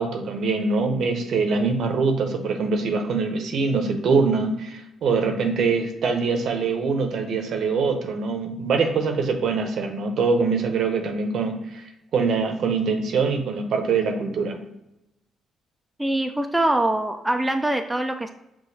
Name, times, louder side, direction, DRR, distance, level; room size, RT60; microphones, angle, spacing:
voice 1, 0.0-11.8 12.1-14.6, right 4 dB, 65° right, 5 dB, 0.6 m, -23 dB
voice 2, 16.0-18.3, right 1 dB, 10° right, 5 dB, 0.3 m, -23 dB
5.8 x 2.3 x 2.7 m, 0.89 s
cardioid pair, 90°, 0 cm